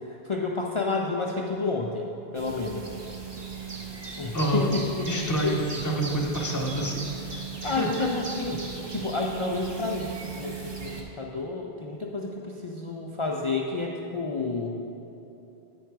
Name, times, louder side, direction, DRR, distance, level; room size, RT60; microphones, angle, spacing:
voice 1, 0.0-2.1 2.3-2.9 4.2-5.5 7.6-14.8, left 3 dB, 55° left, -1 dB, 0.3 m, -30 dB
sound 1, 2.3-11.0, right 5 dB, 30° right, 0.6 m, -38 dB
voice 2, 4.3-4.7 5.1-8.1, right 1 dB, 20° left, -2 dB, 0.8 m, -28 dB
9.4 x 4.6 x 4.6 m, 2.9 s
omnidirectional pair, 1.1 m